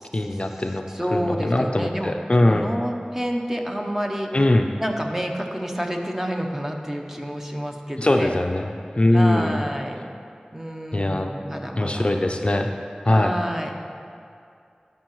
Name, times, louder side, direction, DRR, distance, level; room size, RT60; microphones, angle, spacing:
voice 1, 0.1-0.8 1.1-2.7 4.3-4.7 8.0-9.6 10.9-11.4 11.8-12.7 13.1-13.3, left 1 dB, 40° left, 4 dB, 0.4 m, -21 dB
voice 2, 0.9-2.2 2.5-4.3 4.8-8.3 9.1-10.0 10.5-12.6 13.1-13.7, equal, 15° right, 2 dB, 0.7 m, -29 dB
12.0 x 5.4 x 3.0 m, 2.4 s
wide cardioid pair, 45°, 3 cm